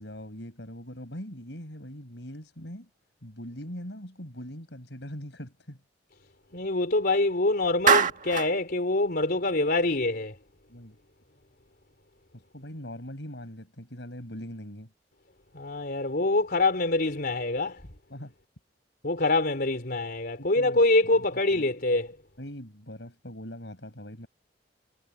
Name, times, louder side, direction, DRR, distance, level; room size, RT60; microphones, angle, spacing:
voice 1, 0.0-2.9 3.2-5.8 10.7-11.0 12.3-14.9 18.1-18.3 20.4-20.8 21.5-21.7 22.4-24.3, equal, 75° left, 5.9 m, -41 dB
voice 2, 6.5-10.4 15.5-17.8 19.0-22.1, left 2 dB, 60° left, 3.8 m, -25 dB
Clapping, 7.9-8.5, right 6 dB, 45° right, 1.7 m, -22 dB
head